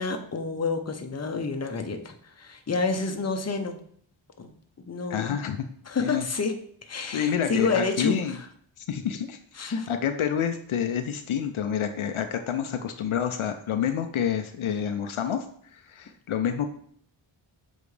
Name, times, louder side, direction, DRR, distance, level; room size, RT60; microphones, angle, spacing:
voice 1, 0.0-3.8 4.4-4.5 4.8-5.4 5.9-6.6 6.9-8.5 9.6-9.9, left 4 dB, 30° left, 6 dB, 0.8 m, -29 dB
voice 2, 5.1-5.6 6.0-6.2 7.1-8.4 8.8-15.4 15.7-16.7, left 8 dB, 75° left, 7 dB, 0.6 m, -28 dB
6.9 x 4.1 x 3.3 m, 0.63 s
cardioid pair, 60°, 49 cm